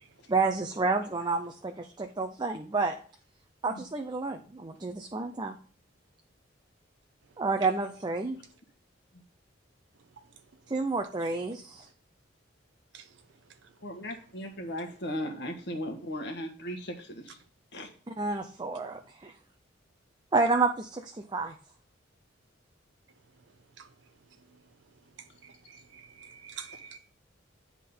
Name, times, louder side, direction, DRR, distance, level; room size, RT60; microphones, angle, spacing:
voice 1, 0.3-3.0 3.6-5.6 7.4-8.4 10.7-11.9 18.2-19.3 20.3-21.6, right 3 dB, 20° right, 0.5 m, -29 dB
voice 2, 13.8-17.4 17.7-17.9 26.7-27.0, equal, 60° left, 1.5 m, -37 dB
voice 3, 25.4-27.0, right 8 dB, 70° right, 0.7 m, -47 dB
9.9 x 3.7 x 5.4 m
head